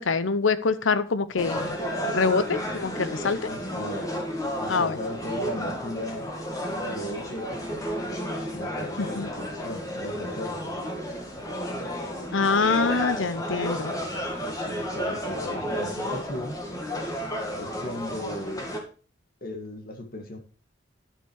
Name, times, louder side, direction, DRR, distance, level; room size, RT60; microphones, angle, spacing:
voice 1, 0.0-1.8 2.1-3.4 4.7-5.0 9.0-9.3 12.3-13.9, left 4 dB, 80° left, 14 dB, 0.8 m, -25 dB
sound 1, 1.4-18.8, equal, 20° left, 2.3 m, -32 dB
voice 2, 3.4-4.2 4.6-6.3 6.8-7.9 8.5-10.8 14.7-16.6 17.6-18.7 19.4-20.4, left 1 dB, 50° left, 6 dB, 1.9 m, -36 dB
11.5 x 7.4 x 4.6 m, 0.38 s
head